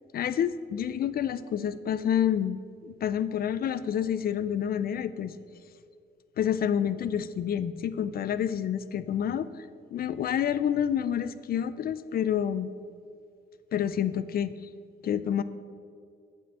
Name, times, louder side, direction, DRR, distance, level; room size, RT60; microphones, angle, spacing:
voice 1, 0.1-5.3 6.4-9.5 9.9-12.7 13.7-14.5 15.0-15.4, left 9 dB, 60° left, 15 dB, 0.4 m, -28 dB
8.2 x 5.5 x 6.6 m, 2.3 s
cardioid pair, 70°, 18 cm